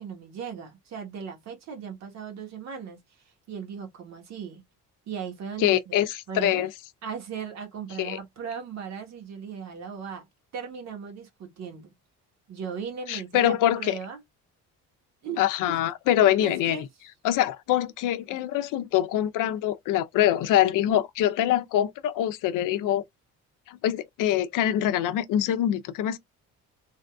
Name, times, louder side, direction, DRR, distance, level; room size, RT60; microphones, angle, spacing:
voice 1, 0.0-3.0 3.5-4.6 5.1-6.0 6.3-6.7 7.0-10.3 10.5-11.9 12.5-14.2 15.2-15.8 16.2-16.9, right 6 dB, 55° right, 1.2 m, -37 dB
voice 2, 5.6-6.7 8.0-8.2 13.1-14.0 15.4-16.8 17.2-23.0 23.7-26.2, left 12 dB, 75° left, 0.6 m, -24 dB
3.5 x 2.6 x 2.2 m
cardioid pair, 175°, 32 cm